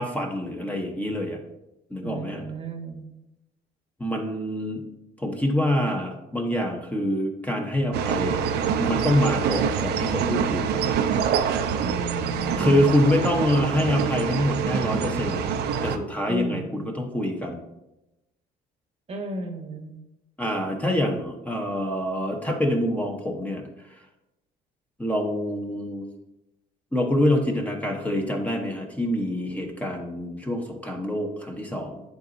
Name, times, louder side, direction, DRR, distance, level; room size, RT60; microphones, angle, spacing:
voice 1, 0.0-1.4 1.9-2.4 4.0-4.8 5.2-10.9 12.5-17.6 20.4-23.6 25.0-26.1 26.9-32.0, left 1 dB, 10° left, 2 dB, 0.9 m, -26 dB
voice 2, 2.0-3.1 11.8-13.2 16.3-16.8 19.1-19.9, right 2 dB, 35° right, 5 dB, 1.0 m, -34 dB
sound 1, 7.9-16.0, right 7 dB, 75° right, 0.5 m, -25 dB
10.5 x 4.0 x 2.6 m, 0.94 s
cardioid pair, 110°, 17 cm